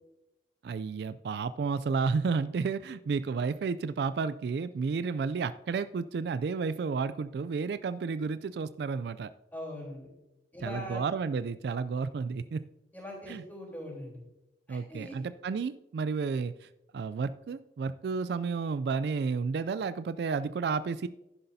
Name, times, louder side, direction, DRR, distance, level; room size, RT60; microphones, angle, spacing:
voice 1, 0.6-9.3 10.6-12.7 13.3-13.4 14.7-16.7 16.9-21.1, right 5 dB, 65° right, 13 dB, 0.3 m, -31 dB
voice 2, 9.5-10.1 10.5-11.0 12.9-14.2 14.7-15.2, left 1 dB, 10° left, -3 dB, 3.5 m, -41 dB
11.0 x 10.5 x 2.7 m, 0.94 s
head